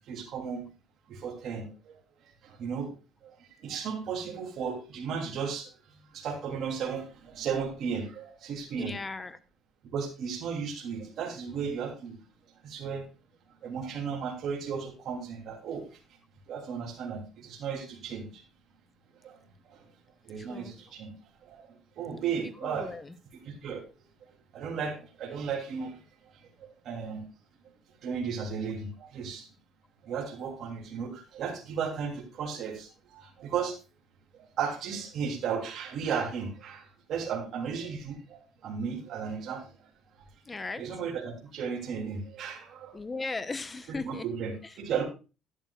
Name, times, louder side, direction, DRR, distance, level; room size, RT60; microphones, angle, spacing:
voice 1, 0.1-0.6 1.1-1.7 2.6-2.9 3.6-5.7 6.1-8.9 9.9-12.1 12.6-13.0 13.6-15.8 16.5-18.4 19.2-19.3 20.2-21.1 21.5-21.6 22.0-22.9 23.6-23.8 24.5-25.9 26.8-27.2 28.0-29.5 30.1-32.9 33.1-33.8 34.6-38.4 38.6-39.6 40.8-43.0 43.9-45.0, right 6 dB, 60° right, 0 dB, 2.9 m, -34 dB
voice 2, 8.7-9.4 20.4-20.8 22.6-23.1 40.5-40.8 42.9-44.2, left 3 dB, 20° left, 12 dB, 1.0 m, -37 dB
11.0 x 10.5 x 2.4 m, 0.32 s
cardioid pair, 100°, 0 cm